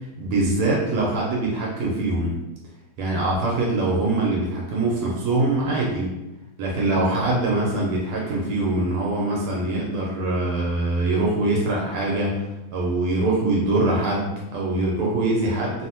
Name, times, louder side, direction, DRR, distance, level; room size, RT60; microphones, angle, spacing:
voice 1, 0.2-2.4 3.0-6.1 6.6-12.4 12.7-15.9, right 2 dB, 85° right, -3 dB, 1.5 m, -23 dB
3.6 x 2.0 x 2.8 m, 0.92 s
omnidirectional pair, 2.3 m